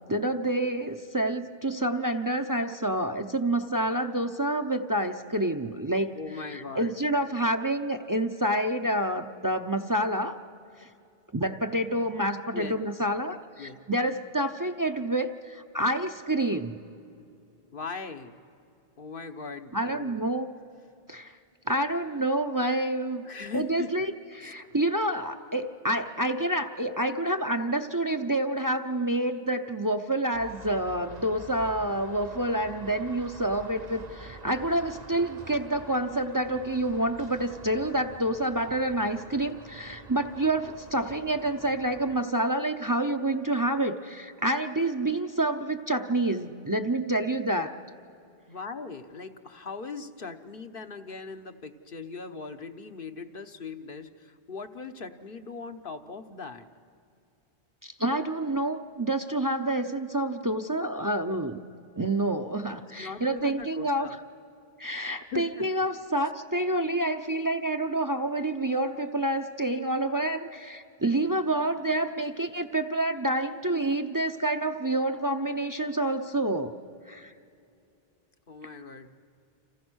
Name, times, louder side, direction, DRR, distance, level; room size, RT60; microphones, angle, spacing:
voice 1, 0.1-6.2 6.5-10.3 10.8-10.9 11.3-16.8 19.7-20.5 21.1-21.4 21.7-23.2 23.5-24.1 24.4-47.7 57.8-61.6 62.0-64.2 64.8-76.7 77.1-77.3, right 1 dB, 20° right, 5 dB, 0.7 m, -28 dB
voice 2, 6.1-7.0 12.5-12.8 13.6-13.8 17.7-18.4 19.0-20.2 23.2-23.9 24.4-24.7 48.5-56.7 62.7-64.2 65.3-65.7 66.2-66.3 78.5-79.2, left 5 dB, 60° left, 7 dB, 1.3 m, -40 dB
sound 1, 30.3-42.2, right 3 dB, 45° right, 1.1 m, -47 dB
30.0 x 27.0 x 6.3 m, 2.5 s
omnidirectional pair, 1.0 m